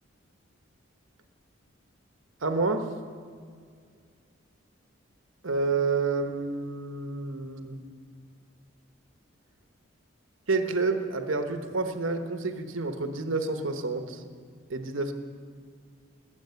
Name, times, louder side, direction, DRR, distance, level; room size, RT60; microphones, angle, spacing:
voice 1, 2.4-2.9 5.4-7.8 10.5-14.2 14.7-15.1, right 3 dB, 75° right, 6 dB, 1.1 m, -29 dB
20.5 x 9.0 x 6.9 m, 2.1 s
head